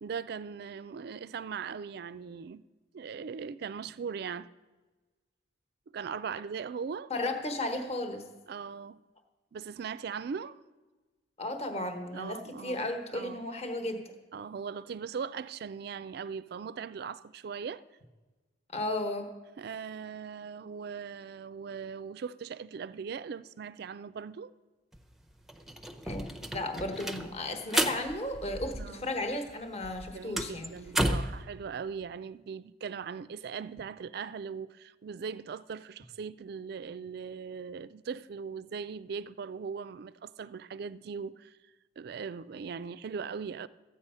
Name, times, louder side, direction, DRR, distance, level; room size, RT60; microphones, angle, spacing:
voice 1, 0.0-2.6 2.9-4.5 5.9-7.1 8.5-9.0 9.5-10.6 12.1-13.5 14.3-17.8 19.6-24.5 28.8-29.1 30.1-41.6 42.0-43.7, right 6 dB, 55° right, 0.3 m, -39 dB
voice 2, 7.1-8.2 11.4-14.0 18.7-19.3 26.0-26.2 26.5-30.7, left 1 dB, 35° left, 1.1 m, -34 dB
sound 1, 24.9-25.0 25.3-29.2 29.5-31.4, right 1 dB, ahead, 0.6 m, -33 dB
13.5 x 8.7 x 5.5 m
head